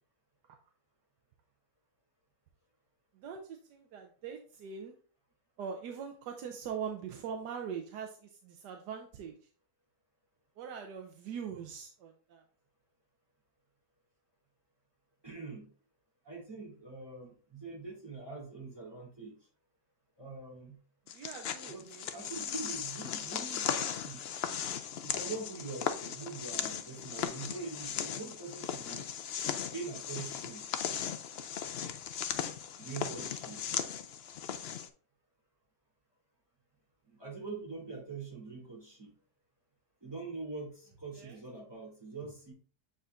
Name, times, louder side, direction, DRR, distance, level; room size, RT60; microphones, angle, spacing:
voice 1, 3.2-4.9 5.6-9.3 10.6-12.4 21.1-22.1 41.2-41.3, right 7 dB, 90° right, 3 dB, 1.4 m, -42 dB
voice 2, 15.2-15.7 16.2-19.3 20.2-20.8 21.7-24.2 25.0-29.1 29.7-30.6 32.8-33.6 37.1-39.1 40.0-42.5, right 4 dB, 15° right, -5 dB, 3.4 m, -44 dB
sound 1, 21.1-34.9, left 8 dB, 75° left, 0.5 m, -37 dB
7.9 x 5.0 x 2.5 m, 0.42 s
omnidirectional pair, 1.7 m